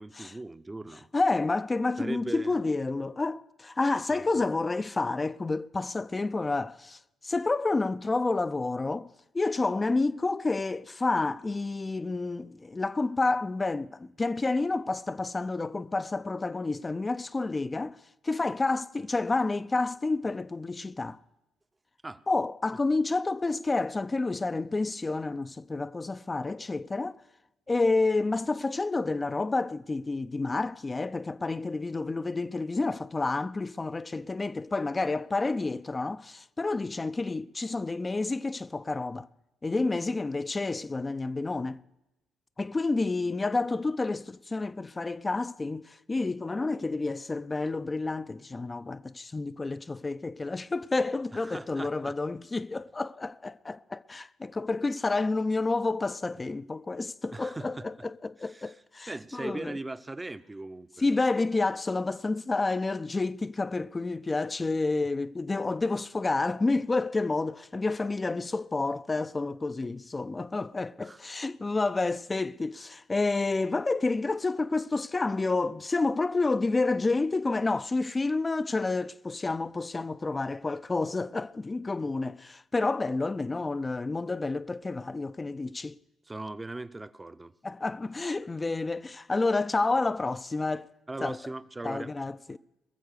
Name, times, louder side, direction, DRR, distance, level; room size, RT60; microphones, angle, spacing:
voice 1, 0.0-1.1 2.0-2.6 4.1-4.3 22.0-22.2 51.3-52.1 57.3-57.8 58.4-58.8 59.1-61.1 71.0-71.2 86.3-87.5 91.1-92.1, right 2 dB, 20° right, 0.7 m, -39 dB
voice 2, 1.1-9.1 9.3-18.0 18.2-21.2 22.3-27.2 27.7-39.3 39.6-41.8 42.6-59.8 61.0-86.0 87.6-90.9 91.2-91.4 91.8-92.6, left 3 dB, 25° left, 0.4 m, -29 dB
21.0 x 7.2 x 6.6 m
hypercardioid pair, 50°, 0 cm